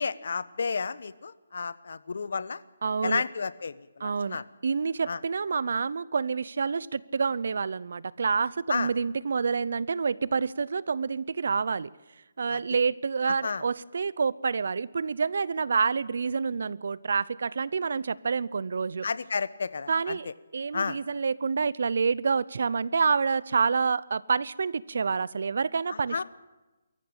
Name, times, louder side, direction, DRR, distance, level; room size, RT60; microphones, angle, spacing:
voice 1, 0.0-2.6 3.0-4.4 5.1-5.2 8.7-8.9 12.5-12.6 13.3-13.6 19.0-20.3 20.7-21.0 26.1-26.2, left 5 dB, 70° left, 16 dB, 1.0 m, -31 dB
voice 2, 2.8-3.2 4.0-11.9 12.4-19.1 19.9-26.2, right 5 dB, 65° right, 21 dB, 0.7 m, -28 dB
23.0 x 14.5 x 8.8 m, 1.1 s
hypercardioid pair, 165°, 0 cm